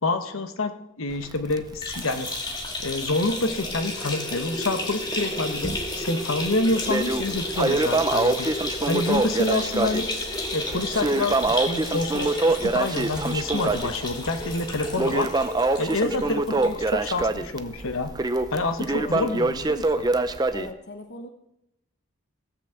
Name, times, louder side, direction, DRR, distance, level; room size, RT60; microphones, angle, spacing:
voice 1, 0.0-0.7 1.0-2.3 2.8-8.5 8.8-10.1 10.5-15.3 15.8-18.1 18.5-20.1, left 2 dB, 80° left, 8 dB, 1.1 m, -27 dB
Crackle, 1.1-3.8 4.1-4.2 4.7-4.8 5.4-6.0 6.4-20.7, right 2 dB, 20° right, 0.5 m, -25 dB
sound 1, 1.7-17.1 17.5-17.6 17.9-18.0 19.0-19.1, left 2 dB, 20° left, 1.8 m, -33 dB
sound 2, 9.7-16.4, right 2 dB, ahead, 2.6 m, -41 dB
voice 2, 15.9-16.8 18.9-19.4 20.5-21.3, left 2 dB, 55° left, 7 dB, 0.9 m, -41 dB
17.5 x 6.0 x 7.2 m, 0.86 s
head